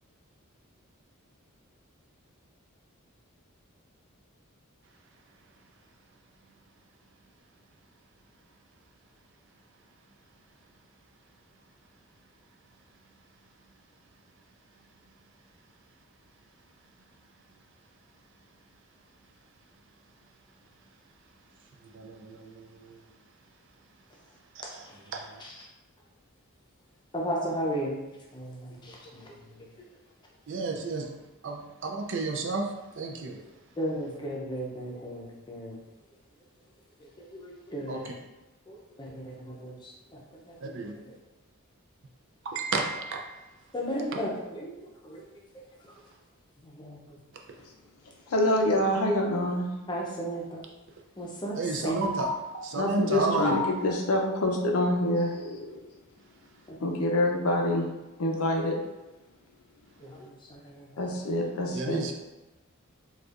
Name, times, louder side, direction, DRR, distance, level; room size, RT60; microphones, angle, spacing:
voice 1, 21.8-23.2 24.5-25.4 30.5-31.1 31.4-33.4 37.9-38.1 40.6-40.9 42.4-43.5 51.5-54.0 61.7-62.1, right 3 dB, 55° right, 2 dB, 0.4 m, -32 dB
voice 2, 24.6-25.0 25.4-25.5 27.1-28.0 28.3-29.9 33.8-35.8 37.0-38.0 38.7-40.2 40.5-41.0 43.7-44.7 45.0-45.2 45.5-45.6 46.6-47.2 49.9-50.6 51.2-52.1 56.7-56.8 60.0-61.2, equal, 20° left, -2 dB, 0.6 m, -35 dB
voice 3, 48.3-49.7 52.8-55.8 56.8-57.9 58.2-58.8 61.0-62.0, left 1 dB, 85° left, 1 dB, 0.6 m, -26 dB
4.2 x 2.3 x 2.4 m, 1.1 s
head